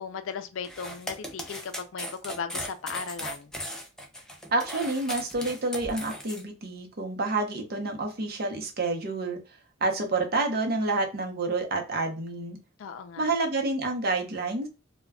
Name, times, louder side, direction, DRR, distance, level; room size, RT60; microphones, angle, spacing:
voice 1, 0.0-3.5 12.8-13.3, left 6 dB, 75° left, 0.4 m, -37 dB
sound 1, 0.6-6.4, equal, 5° left, 0.4 m, -37 dB
voice 2, 4.5-9.4 9.8-12.6 13.2-14.7, right 3 dB, 50° right, 0.7 m, -28 dB
2.2 x 2.2 x 3.4 m
head